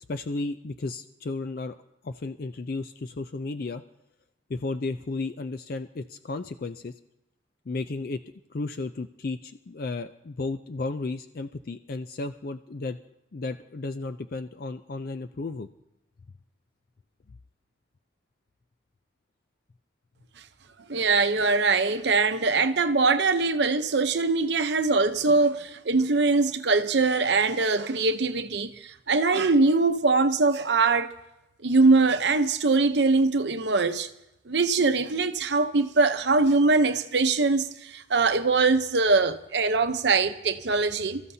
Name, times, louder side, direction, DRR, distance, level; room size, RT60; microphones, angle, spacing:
voice 1, 0.1-1.7 2.0-3.8 4.5-6.9 7.7-8.2 8.5-13.0 13.3-15.7, left 3 dB, 50° left, 0.4 m, -33 dB
voice 2, 20.9-31.1 31.6-34.1 34.5-41.2, right 3 dB, 65° right, 0.7 m, -22 dB
27.5 x 14.5 x 2.7 m
head